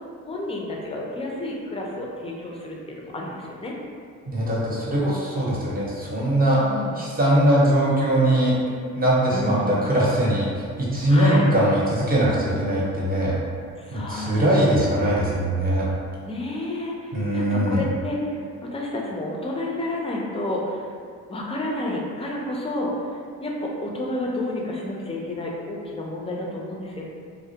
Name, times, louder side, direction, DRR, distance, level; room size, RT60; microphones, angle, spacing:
voice 1, 0.2-3.7 6.6-7.1 9.3-9.8 11.1-11.5 13.8-15.0 16.2-20.9 21.3-27.0, left 1 dB, 20° left, -2 dB, 0.4 m, -30 dB
voice 2, 4.3-6.6 7.0-8.6 8.9-10.5 10.8-13.4 13.9-15.9 17.1-17.8, right 1 dB, 30° right, -7 dB, 0.8 m, -21 dB
2.3 x 2.1 x 2.7 m, 2.1 s
cardioid pair, 90°, 30 cm